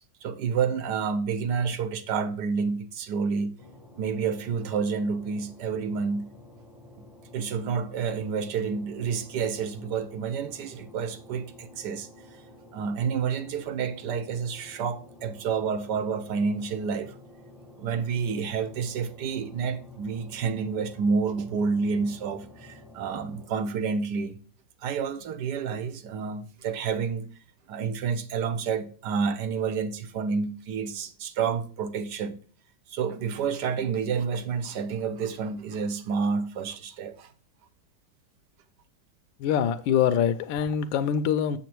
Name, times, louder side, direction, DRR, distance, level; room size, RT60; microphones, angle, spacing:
voice 1, 0.2-3.5 4.0-6.3 7.0-7.1 7.3-12.1 12.7-17.1 17.8-24.4 24.8-27.3 27.7-32.4 32.9-37.3, right 5 dB, 65° right, 1.4 m, -29 dB
sound 1, 3.6-23.5, left 1 dB, ahead, 0.9 m, -51 dB
voice 2, 39.4-41.6, left 8 dB, 80° left, 1.3 m, -24 dB
7.3 x 7.2 x 4.5 m
omnidirectional pair, 2.1 m